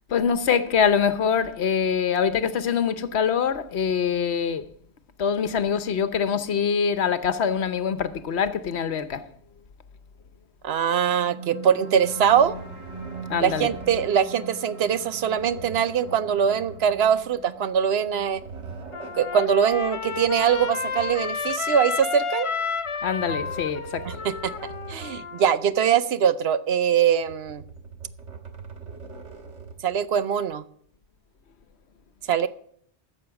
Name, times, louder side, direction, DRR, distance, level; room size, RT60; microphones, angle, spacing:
voice 1, 0.1-4.6 5.2-9.2 13.3-13.7 23.0-24.2, left 7 dB, 70° left, 1.1 m, -24 dB
voice 2, 10.6-12.6 13.4-18.4 19.1-22.5 24.0-24.5 24.9-27.6 29.8-30.6 32.3-32.5, right 8 dB, 65° right, 0.9 m, -22 dB
sound 1, 11.0-21.9, right 4 dB, 25° right, 2.1 m, -42 dB
sound 2, 12.2-14.2 15.3-17.4 18.0-19.3 20.1-21.6 22.8-25.3 25.7-25.8 27.1-29.9, right 4 dB, 90° right, 1.7 m, -42 dB
Trumpet, 18.9-25.6, left 5 dB, 40° left, 0.5 m, -31 dB
13.5 x 7.1 x 7.0 m
omnidirectional pair, 1.2 m